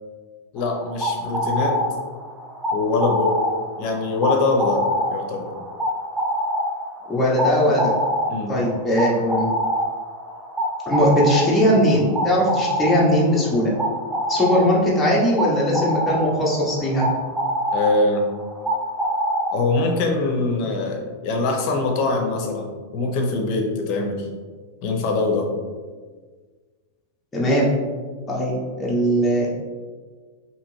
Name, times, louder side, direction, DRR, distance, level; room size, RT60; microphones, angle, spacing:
voice 1, 0.5-1.8 2.7-3.4 3.8-4.8 5.1-5.5 8.3-8.6 17.7-18.3 19.5-24.3 24.8-25.5, left 3 dB, 50° left, 2 dB, 0.6 m, -23 dB
sound 1, 0.6-20.0, equal, 10° right, 0.3 m, -26 dB
voice 2, 7.1-7.9 8.5-9.5 10.9-13.7 14.3-17.1 27.3-27.7 28.3-29.5, equal, 10° left, -6 dB, 0.7 m, -19 dB
2.7 x 2.5 x 3.0 m, 1.5 s
hypercardioid pair, 120°, 0 cm